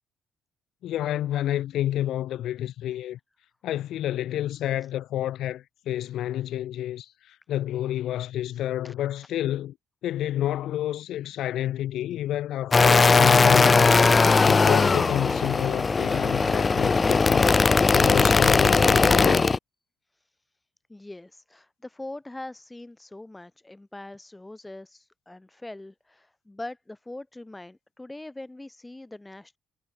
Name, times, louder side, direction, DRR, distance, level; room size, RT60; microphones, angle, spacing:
voice 1, 0.8-3.2 3.6-9.7 10.0-14.1 14.4-17.5 17.9-19.4, left 12 dB, 75° left, 1.2 m, -29 dB
sound 1, 12.7-19.6, left 4 dB, 30° left, 0.6 m, -19 dB
voice 2, 20.9-29.6, left 2 dB, 10° left, 5.9 m, -42 dB
cardioid pair, 85°, 0 cm